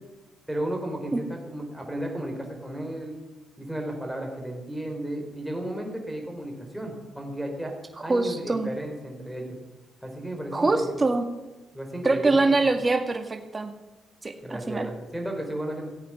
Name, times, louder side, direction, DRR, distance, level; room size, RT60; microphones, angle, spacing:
voice 1, 0.5-3.2 3.6-7.7 8.0-9.6 10.0-10.9 11.7-12.6 14.4-15.9, right 1 dB, 5° right, 1 dB, 3.9 m, -34 dB
voice 2, 8.1-8.7 10.5-11.3 12.0-13.7 14.2-14.9, right 3 dB, 25° right, 5 dB, 2.1 m, -24 dB
17.0 x 8.3 x 6.2 m, 1.1 s
cardioid pair, 85°, 0 cm